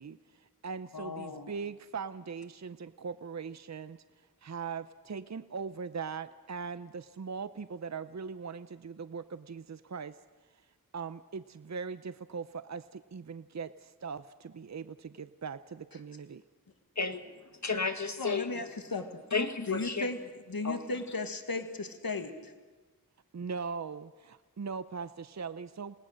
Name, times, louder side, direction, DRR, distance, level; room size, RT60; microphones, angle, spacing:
voice 1, 0.0-4.0 4.4-10.2 10.9-16.4 23.3-25.9, right 5 dB, 50° right, 13 dB, 0.6 m, -40 dB
voice 2, 0.9-1.5 18.2-19.1 19.7-20.2 20.5-22.5, left 3 dB, 75° left, 6 dB, 1.7 m, -36 dB
voice 3, 17.6-18.6 19.3-20.1 20.6-20.8, left 4 dB, 50° left, 8 dB, 1.6 m, -32 dB
28.0 x 19.0 x 6.4 m, 1.3 s
wide cardioid pair, 45°, 36 cm